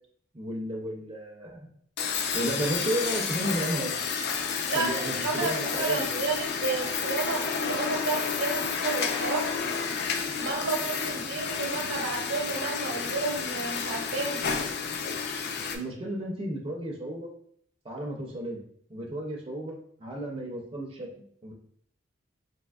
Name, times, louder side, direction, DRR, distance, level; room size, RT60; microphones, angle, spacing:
voice 1, 0.3-1.7 2.3-3.9 4.7-6.2 15.7-17.3 17.8-18.6 18.9-21.5, right 1 dB, 30° right, -1 dB, 0.4 m, -33 dB
sound 1, 2.0-15.8, left 6 dB, 55° left, 0.3 m, -31 dB
voice 2, 4.6-9.5 10.4-14.4, right 3 dB, 75° right, 1 dB, 0.7 m, -31 dB
3.4 x 2.7 x 2.3 m, 0.63 s
head